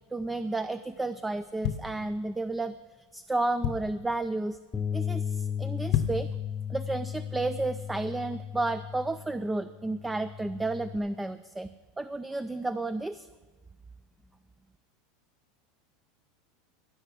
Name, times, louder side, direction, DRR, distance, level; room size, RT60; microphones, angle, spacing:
voice 1, 0.1-2.8 3.1-4.6 4.9-6.3 6.7-11.7 12.0-13.3, right 2 dB, 10° right, 13 dB, 0.3 m, -32 dB
sound 1, 1.3-2.6 3.1-3.2 3.3-4.1 4.6-4.8 5.1-5.2 5.7-6.4 6.8-6.9, left 11 dB, 55° left, 0.7 m, -31 dB
Bass guitar, 4.7-11.0, left 8 dB, 15° left, 0.6 m, -35 dB
15.5 x 6.5 x 6.1 m, 1.3 s
supercardioid pair, 130°, 0 cm